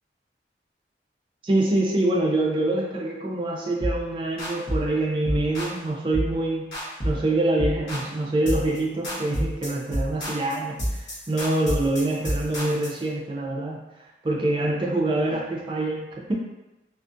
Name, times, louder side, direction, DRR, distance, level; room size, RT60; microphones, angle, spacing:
voice 1, 1.4-6.7 7.0-13.8 14.2-16.3, right 2 dB, 30° right, -2 dB, 0.4 m, -25 dB
sound 1, 3.8-4.0 4.4-4.9 5.2-5.8 6.1-6.4 6.7-7.3 7.6-8.1 8.5-8.8 9.0-13.0, equal, 70° left, 1.0 m, -29 dB
2.5 x 2.3 x 2.5 m, 0.98 s
head